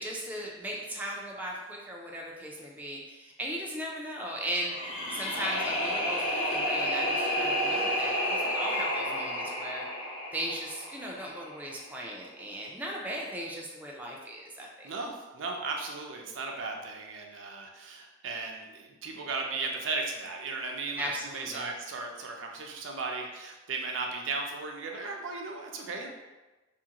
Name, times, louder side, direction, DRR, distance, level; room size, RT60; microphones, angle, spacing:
voice 1, 0.0-4.7 5.1-9.9 10.3-14.9 21.0-21.7, right 1 dB, 10° right, -3 dB, 0.4 m, -37 dB
sound 1, 4.6-11.6, equal, 85° left, 0.8 m, -31 dB
voice 2, 14.8-26.1, right 3 dB, 80° right, 1 dB, 0.5 m, -36 dB
2.7 x 2.5 x 2.8 m, 1.1 s
head